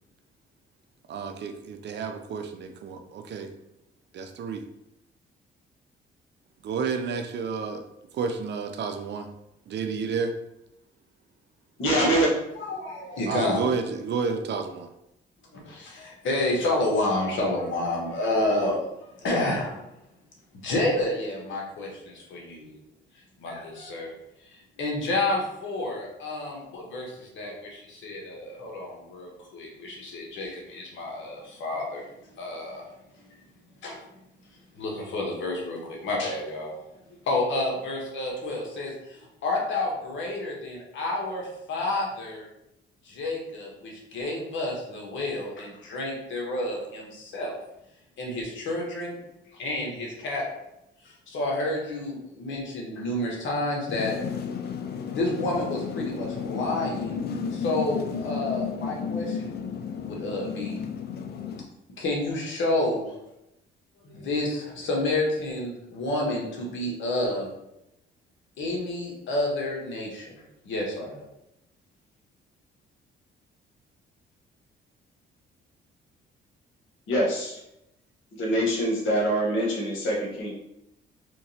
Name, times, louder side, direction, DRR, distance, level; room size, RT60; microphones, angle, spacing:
voice 1, 1.1-3.5 4.1-4.6 6.6-7.8 8.1-9.3 9.7-10.3 13.3-14.9, right 5 dB, 60° right, 6 dB, 0.5 m, -30 dB
voice 2, 11.8-12.3 77.1-77.6 78.4-80.5, right 1 dB, 90° left, -3 dB, 1.2 m, -24 dB
voice 3, 12.6-13.6 15.5-19.9 20.5-22.7 23.4-24.1 24.8-32.1 32.4-32.9 33.8-34.0 34.7-36.8 37.2-42.5 43.0-47.5 48.2-49.2 49.5-50.5 51.0-54.1 55.1-57.2 57.5-59.6 60.1-60.8 62.0-63.2 64.0-67.5 68.6-70.3 70.6-71.2, left 2 dB, 75° left, -1 dB, 1.2 m, -30 dB
sound 1, 53.9-61.6, left 6 dB, 55° left, 0.4 m, -33 dB
3.5 x 3.0 x 2.8 m, 0.85 s
cardioid pair, 90°, 20 cm